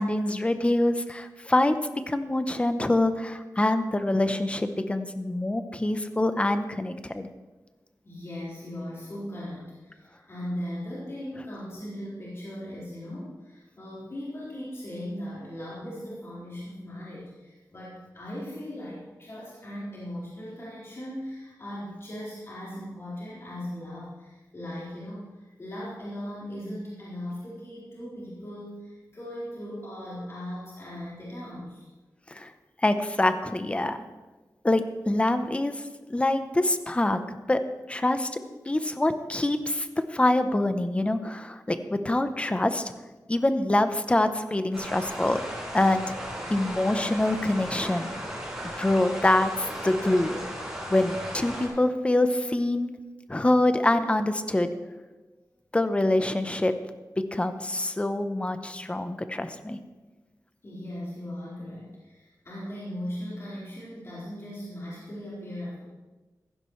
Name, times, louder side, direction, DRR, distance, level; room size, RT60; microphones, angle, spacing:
voice 1, 0.0-1.7 2.1-7.3 32.3-32.5 32.8-34.0 34.6-37.6 37.9-42.9 43.3-45.4 45.7-46.1 46.5-48.1 48.8-50.3 50.9-52.9 53.3-54.7 55.7-56.7 57.2-59.8, left 1 dB, 20° left, 9 dB, 0.8 m, -25 dB
voice 2, 8.0-31.9 60.6-65.8, equal, 40° left, -9 dB, 4.4 m, -38 dB
sound 1, 44.7-51.7, equal, 10° right, 5.6 m, -36 dB
15.5 x 15.5 x 3.2 m, 1.2 s
wide cardioid pair, 120°, 7 cm